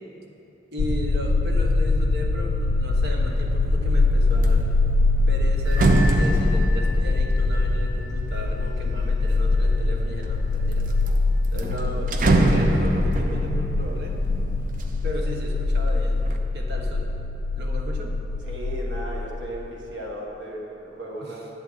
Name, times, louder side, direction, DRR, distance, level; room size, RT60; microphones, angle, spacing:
voice 1, 0.7-4.8 5.3-11.0 11.5-14.2 15.0-16.2 16.5-17.1 17.5-18.1 21.2-21.4, equal, 60° right, 0 dB, 1.2 m, -35 dB
sound 1, 0.8-19.7, left 3 dB, 80° left, 0.4 m, -23 dB
sound 2, 3.3-3.7 4.1-9.4 10.0-10.7 11.1-11.2 11.4-15.4 15.8-16.4, right 2 dB, 45° right, 0.5 m, -25 dB
Bell, 5.6-11.1, left 1 dB, 10° right, 1.9 m, -40 dB
voice 2, 18.4-21.5, right 1 dB, 85° right, -2 dB, 1.6 m, -35 dB
11.0 x 8.3 x 4.1 m, 2.8 s
head